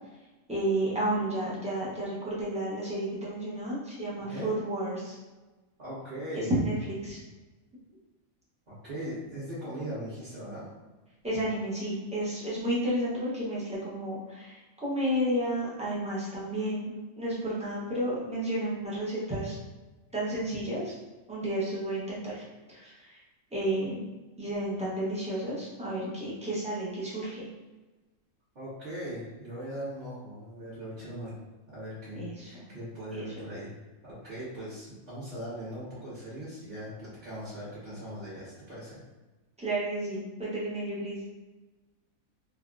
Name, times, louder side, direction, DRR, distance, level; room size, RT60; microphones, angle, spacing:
voice 1, 0.5-5.2 6.3-7.2 11.2-19.6 20.1-20.9 21.3-22.4 22.7-23.2 23.5-24.0 24.4-27.5 32.2-32.5 33.2-33.3 39.6-41.3, right 1 dB, 10° right, -8 dB, 0.4 m, -31 dB
voice 2, 5.8-6.5 8.7-10.7 28.5-31.3 31.7-33.7 34.0-39.0, equal, 35° right, -14 dB, 1.2 m, -39 dB
3.4 x 2.2 x 2.4 m, 1.2 s
omnidirectional pair, 1.5 m